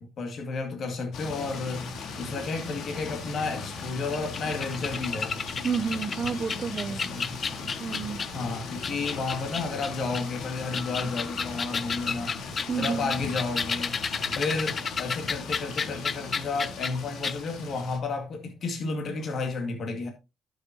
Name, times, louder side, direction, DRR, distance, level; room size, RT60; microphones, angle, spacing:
voice 1, 0.0-5.4 6.9-7.4 8.3-14.0 14.3-20.1, left 3 dB, 60° left, 2.1 m, -32 dB
sound 1, 1.1-18.0, left 4 dB, 80° left, 1.8 m, -38 dB
sound 2, 4.1-8.4 8.8-10.2 10.6-16.9 17.2-17.4, left 5 dB, 40° left, 0.6 m, -32 dB
voice 2, 5.6-7.1 7.8-8.3 12.7-13.1, right 6 dB, 45° right, 0.6 m, -30 dB
11.5 x 6.5 x 2.9 m
cardioid pair, 90°, 0 cm